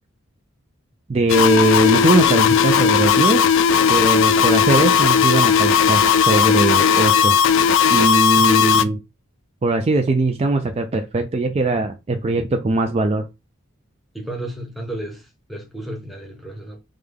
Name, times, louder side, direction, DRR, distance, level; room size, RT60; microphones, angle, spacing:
voice 1, 1.1-3.5 3.9-7.4 7.9-9.0 9.6-13.3, right 2 dB, 30° right, 0.3 m, -20 dB
sound 1, 1.3-8.8, left 7 dB, 65° left, 0.3 m, -16 dB
voice 2, 8.4-8.9 14.1-16.8, right 1 dB, ahead, 0.8 m, -33 dB
5.0 x 2.2 x 3.4 m
head